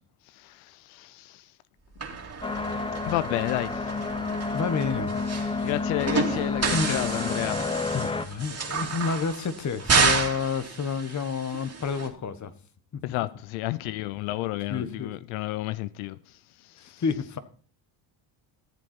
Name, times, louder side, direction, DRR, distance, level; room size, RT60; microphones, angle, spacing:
voice 1, 0.2-1.6 3.0-4.5 5.6-8.0 13.0-17.0, left 17 dB, 90° left, 0.6 m, -32 dB
sound 1, 2.0-12.1, right 5 dB, 30° right, 2.6 m, -30 dB
sound 2, 2.4-8.3, left 3 dB, 10° left, 0.8 m, -30 dB
voice 2, 4.5-5.7 6.7-7.2 7.9-12.5 12.9-13.0 14.7-15.1 16.8-17.4, left 5 dB, 35° left, 1.3 m, -30 dB
14.0 x 7.8 x 4.4 m
cardioid pair, 85°, 48 cm